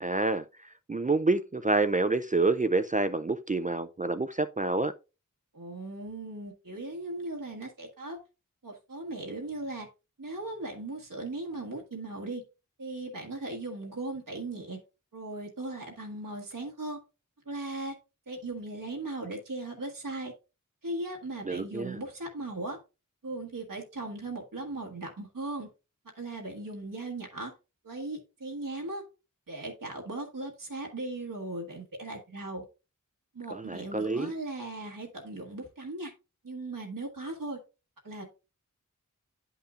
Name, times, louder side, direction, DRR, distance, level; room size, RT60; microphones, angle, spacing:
voice 1, 0.0-4.9 21.5-22.0 33.5-34.3, right 3 dB, 25° right, 0.4 m, -28 dB
voice 2, 5.5-8.2 8.6-9.9 10.2-12.4 12.8-14.8 15.1-17.0 17.4-18.0 18.3-20.3 20.8-22.8 23.2-25.7 26.1-27.5 27.8-29.0 29.5-32.6 33.3-36.1 36.4-37.6 38.0-38.2, right 2 dB, 90° right, 1.5 m, -38 dB
10.0 x 5.6 x 2.4 m
wide cardioid pair, 55°, 32 cm